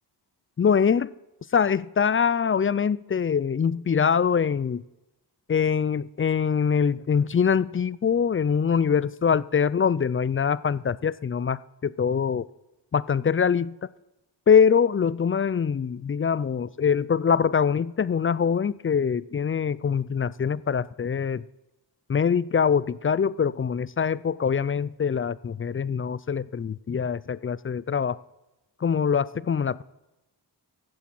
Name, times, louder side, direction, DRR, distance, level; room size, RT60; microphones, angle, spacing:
voice 1, 0.6-1.1 1.5-4.8 5.5-12.5 12.9-13.7 14.5-21.4 22.1-28.2 28.8-29.8, left 6 dB, 30° left, 20 dB, 0.4 m, -23 dB
15.0 x 8.2 x 7.7 m, 0.98 s
wide cardioid pair, 65°, 42 cm